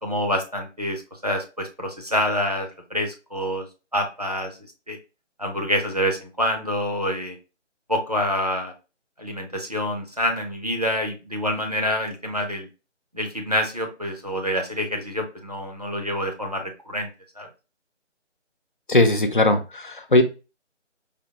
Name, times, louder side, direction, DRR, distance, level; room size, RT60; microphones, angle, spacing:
voice 1, 0.0-3.7 3.9-4.6 4.9-5.0 5.4-7.4 7.9-8.7 9.2-12.7 13.1-17.1 17.4-17.5, equal, 35° right, 2 dB, 0.6 m, -27 dB
voice 2, 18.9-20.2, left 2 dB, 45° left, 6 dB, 0.5 m, -19 dB
4.9 x 2.1 x 2.8 m, 0.30 s
figure-of-eight pair, 180°, 36 cm